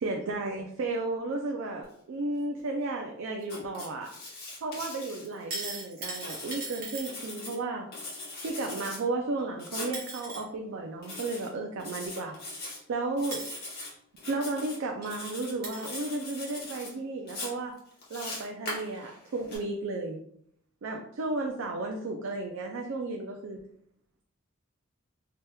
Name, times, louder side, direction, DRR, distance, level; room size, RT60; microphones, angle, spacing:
voice 1, 0.0-4.1 4.6-7.9 8.4-12.4 12.9-13.4 14.3-17.7 18.1-20.2 20.8-23.6, right 2 dB, 70° right, 2 dB, 0.4 m, -33 dB
Writing, 3.4-5.7 6.1-7.6 7.9-9.0 9.6-9.9 11.0-11.5 11.8-12.8 13.2-13.9 14.2-14.8 15.1-15.5 15.8-16.9 17.3-19.6, left 2 dB, 50° left, 1.1 m, -41 dB
sound 1, 5.2-7.1 9.4-9.5 9.9-10.4 12.3-12.4 13.3-13.6 14.6-14.7 15.0-15.1 15.6-16.0 16.8-16.9, right 3 dB, 45° right, 0.9 m, -38 dB
3.3 x 2.8 x 2.2 m, 0.69 s
head